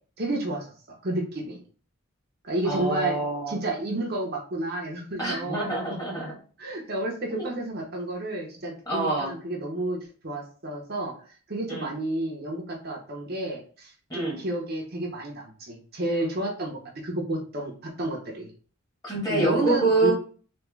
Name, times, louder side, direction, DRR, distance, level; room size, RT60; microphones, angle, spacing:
voice 1, 0.2-1.6 2.4-3.2 3.5-5.7 6.6-10.0 10.2-11.1 11.5-18.5 19.3-20.1, right 1 dB, 50° right, 0 dB, 0.8 m, -31 dB
voice 2, 2.6-3.6 5.2-6.4 7.3-7.5 8.9-9.3 11.7-11.9 14.1-14.4 19.0-20.1, right 2 dB, 15° left, -4 dB, 1.5 m, -26 dB
3.5 x 2.9 x 3.1 m, 0.42 s
head